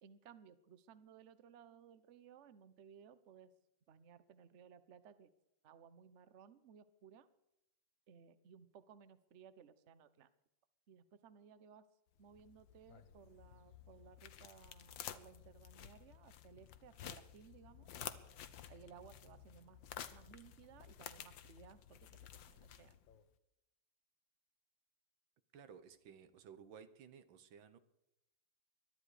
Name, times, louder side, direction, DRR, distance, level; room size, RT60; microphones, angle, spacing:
voice 1, 0.0-3.5 3.9-5.3 5.6-7.3 8.1-10.3 10.9-11.8 12.2-17.9 18.7-19.8 20.1-22.9, right 7 dB, 50° right, 14 dB, 1.0 m, -60 dB
sound 1, 12.2-23.2, left 10 dB, 80° left, 1.7 m, -53 dB
voice 2, 25.5-27.8, right 7 dB, 85° right, 11 dB, 1.9 m, -57 dB
22.0 x 12.5 x 5.0 m, 0.85 s
omnidirectional pair, 2.1 m